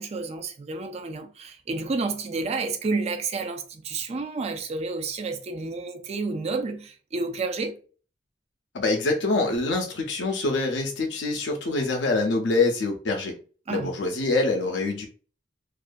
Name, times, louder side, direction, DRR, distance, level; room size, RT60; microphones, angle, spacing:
voice 1, 0.0-7.8 13.7-13.9, right 3 dB, 35° right, 0.4 m, -30 dB
voice 2, 8.7-13.4 13.7-15.1, left 3 dB, 75° left, 0.5 m, -25 dB
2.5 x 2.4 x 2.2 m
head